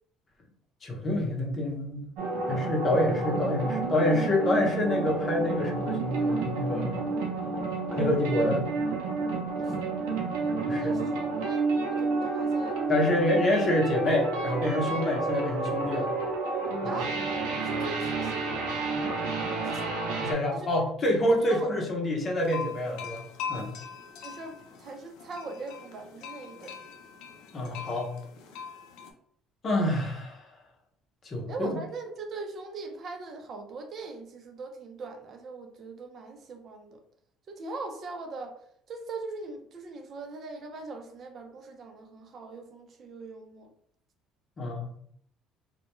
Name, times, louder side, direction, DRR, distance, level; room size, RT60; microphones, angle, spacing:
voice 1, 0.8-2.1 2.5-6.9 7.9-8.7 10.7-10.9 12.9-16.1 20.2-23.2 23.5-23.7 27.5-28.1 29.6-30.4 31.2-31.8 44.6-44.9, left 1 dB, 40° left, 0 dB, 0.7 m, -27 dB
sound 1, 2.2-20.3, right 3 dB, 90° right, 0.6 m, -30 dB
voice 2, 9.5-9.9 10.6-11.6 11.9-12.8 13.3-13.4 15.2-15.3 16.8-17.2 17.6-18.7 19.4-20.0 20.5-20.7 21.5-21.7 24.2-26.7 31.5-37.0 37.5-38.6 38.9-43.7, right 3 dB, 50° right, 4 dB, 0.5 m, -41 dB
sound 2, 22.4-29.1, left 6 dB, 80° left, 0.4 m, -42 dB
2.3 x 2.1 x 2.9 m, 0.65 s
cardioid pair, 100°, 0 cm